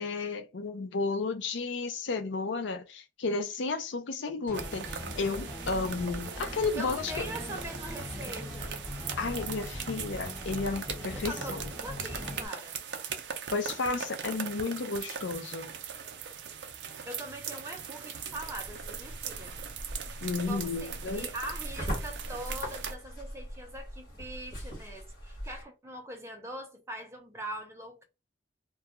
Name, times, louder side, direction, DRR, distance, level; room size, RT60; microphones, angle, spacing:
voice 1, 0.0-7.3 9.2-11.6 13.5-15.7 20.2-21.3, left 4 dB, 80° left, 0.5 m, -33 dB
sound 1, 4.5-12.5, left 1 dB, 10° left, 1.4 m, -40 dB
sound 2, 4.5-23.0, right 7 dB, 70° right, 0.4 m, -40 dB
voice 2, 6.8-8.8 11.1-12.8 17.0-19.6 20.5-28.0, right 1 dB, 15° right, 0.5 m, -42 dB
sound 3, 18.3-25.6, equal, 50° left, 1.2 m, -41 dB
2.4 x 2.3 x 2.9 m
head